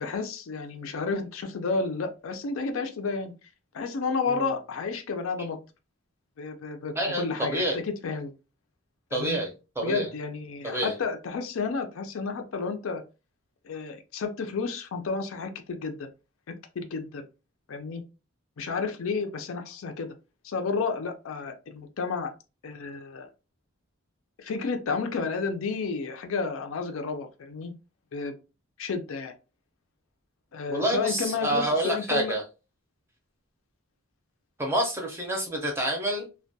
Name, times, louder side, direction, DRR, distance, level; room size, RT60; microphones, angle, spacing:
voice 1, 0.0-3.3 3.7-5.6 6.4-8.3 9.1-9.4 9.8-13.0 13.6-16.1 16.8-17.3 17.7-18.0 18.6-20.1 20.4-22.3 22.6-23.3 24.4-27.7 28.1-28.3 28.8-29.3 30.5-32.3, left 4 dB, 75° left, 6 dB, 0.4 m, -31 dB
voice 2, 7.0-7.8 9.1-9.5 9.8-10.1 10.6-10.9 30.7-32.4 34.6-36.3, right 1 dB, 10° right, 1 dB, 0.5 m, -28 dB
2.2 x 2.2 x 2.7 m, 0.30 s
head